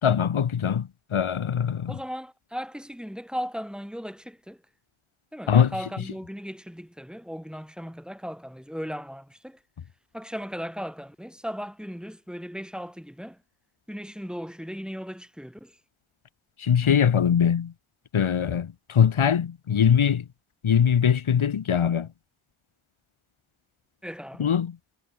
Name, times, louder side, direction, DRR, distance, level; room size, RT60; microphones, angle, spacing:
voice 1, 0.0-2.0 5.5-5.7 16.6-17.7 18.1-20.3 20.6-22.1 24.4-24.8, left 8 dB, 80° left, 1.1 m, -22 dB
voice 2, 1.9-4.6 5.3-9.6 10.1-13.4 13.9-15.8 24.0-24.5, equal, ahead, 3.7 m, -37 dB
wide cardioid pair, 75°, 48 cm